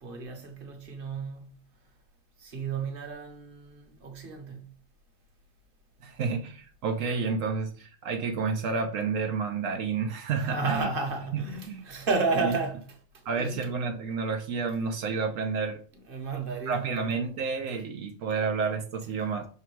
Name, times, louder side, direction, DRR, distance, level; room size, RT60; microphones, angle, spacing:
voice 1, 0.0-1.5 2.4-4.8 10.4-13.7 16.1-17.1, right 4 dB, 45° right, 1.3 m, -32 dB
voice 2, 6.0-10.9 11.3-11.8 13.3-15.8 16.7-19.5, right 5 dB, 80° right, 1.1 m, -30 dB
6.0 x 3.6 x 4.5 m
omnidirectional pair, 1.3 m